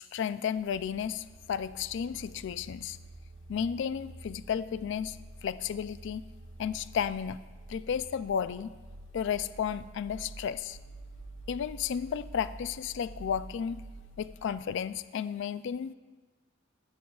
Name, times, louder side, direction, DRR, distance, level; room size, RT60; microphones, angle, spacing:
voice 1, 0.0-3.0 3.5-6.2 6.6-7.4 7.7-8.7 9.1-10.8 11.5-13.8 14.2-15.9, left 8 dB, 65° left, 15 dB, 0.3 m, -33 dB
sound 1, 0.6-14.8, right 2 dB, 60° right, 0.6 m, -49 dB
16.5 x 8.5 x 2.4 m, 1.3 s
head